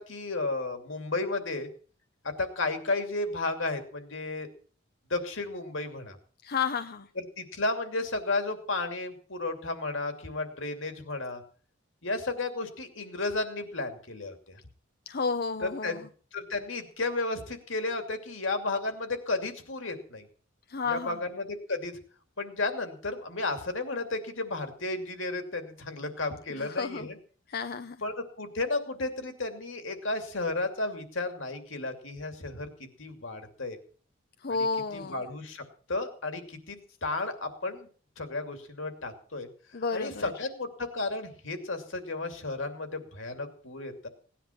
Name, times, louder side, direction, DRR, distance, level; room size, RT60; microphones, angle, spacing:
voice 1, 0.0-1.7 2.2-4.5 5.1-6.2 7.2-11.4 12.0-14.6 15.6-16.0 16.3-20.3 20.8-22.0 22.4-27.2 28.0-32.7 33.0-33.8 34.9-37.9 38.2-39.5 39.9-44.1, left 2 dB, 70° left, 7 dB, 2.7 m, -33 dB
voice 2, 6.4-7.1 15.1-16.0 20.7-21.2 26.5-27.1 27.5-28.0 34.4-35.2 39.7-40.3, left 5 dB, 50° left, 10 dB, 0.7 m, -31 dB
18.0 x 10.0 x 5.9 m, 0.43 s
head